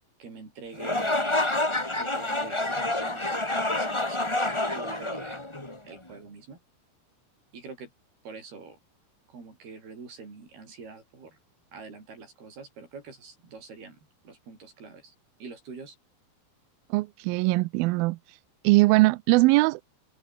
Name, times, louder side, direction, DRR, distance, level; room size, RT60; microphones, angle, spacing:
voice 1, 0.2-1.4 2.0-5.4 5.8-6.6 7.5-7.9 8.2-8.8 9.3-11.4 11.7-15.1 15.4-16.0, right 4 dB, 65° right, 9.1 m, -45 dB
sound 1, 0.7-6.0, left 2 dB, 15° left, 1.1 m, -28 dB
voice 2, 16.9-18.2 18.6-19.8, right 21 dB, 90° right, 2.1 m, -21 dB
omnidirectional pair, 4.9 m